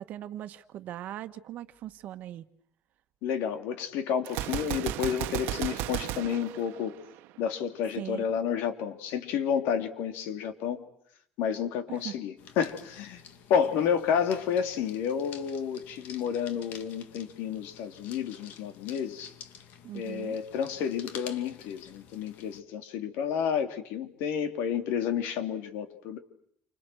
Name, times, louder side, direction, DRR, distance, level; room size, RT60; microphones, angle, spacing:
voice 1, 0.0-2.4 8.0-8.2 11.9-12.1 19.8-20.4, right 12 dB, 50° right, 1.4 m, -40 dB
voice 2, 3.2-6.9 7.4-10.9 11.4-13.2 13.5-19.3 19.9-26.2, left 8 dB, 90° left, 3.3 m, -30 dB
Gunshot gunfire, 4.3-7.4, right 14 dB, 90° right, 1.1 m, -34 dB
sound 1, 12.4-22.6, left 8 dB, 60° left, 2.5 m, -50 dB
28.5 x 26.5 x 7.9 m
cardioid pair, 175°, 4 cm